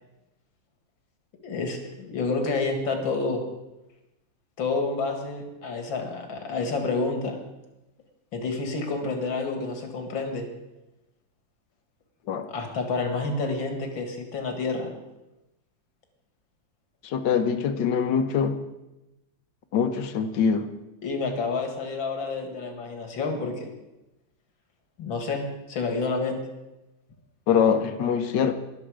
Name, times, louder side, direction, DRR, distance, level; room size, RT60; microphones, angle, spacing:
voice 1, 1.4-3.4 4.6-7.4 8.3-10.5 12.5-14.9 21.0-23.7 25.0-26.4, left 3 dB, 85° left, 4 dB, 2.7 m, -29 dB
voice 2, 17.0-18.6 19.7-20.7 27.5-28.5, left 7 dB, 70° left, 9 dB, 1.5 m, -23 dB
21.5 x 7.2 x 5.0 m, 0.97 s
omnidirectional pair, 2.0 m